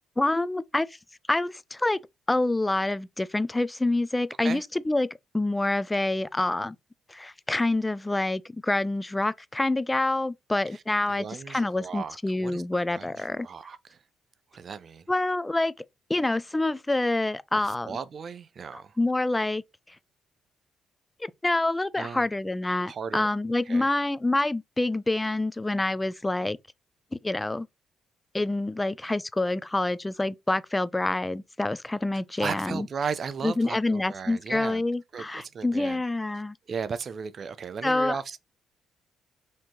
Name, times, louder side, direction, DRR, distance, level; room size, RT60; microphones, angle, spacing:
voice 1, 0.2-1.0 1.3-2.0 2.3-5.1 5.3-6.8 7.1-13.5 15.1-15.7 16.1-18.0 18.7-19.6 19.9-20.0 21.2-26.6 27.1-27.7 28.3-32.9 33.4-36.6 37.8-38.2, left 2 dB, 15° left, 0.4 m, -27 dB
voice 2, 11.1-12.6 12.9-14.0 14.5-15.1 17.6-19.0 22.0-22.3 22.8-23.3 23.7-23.9 32.4-34.8 35.1-36.0 36.7-38.4, right 6 dB, 50° right, 0.6 m, -36 dB
4.3 x 2.9 x 3.8 m
cardioid pair, 90°, 0 cm